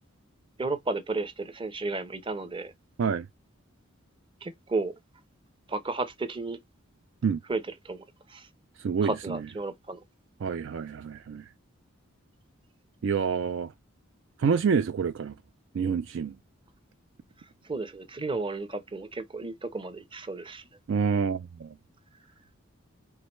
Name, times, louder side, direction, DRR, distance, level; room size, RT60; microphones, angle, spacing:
voice 1, 0.6-2.7 4.4-4.9 5.7-6.6 7.5-8.5 9.0-10.0 17.6-20.6, right 3 dB, 25° right, 0.7 m, -33 dB
voice 2, 8.8-9.5 10.4-11.4 13.0-13.7 14.4-15.3 15.7-16.4 20.9-21.7, right 6 dB, 65° right, 0.4 m, -27 dB
4.8 x 3.1 x 3.0 m
head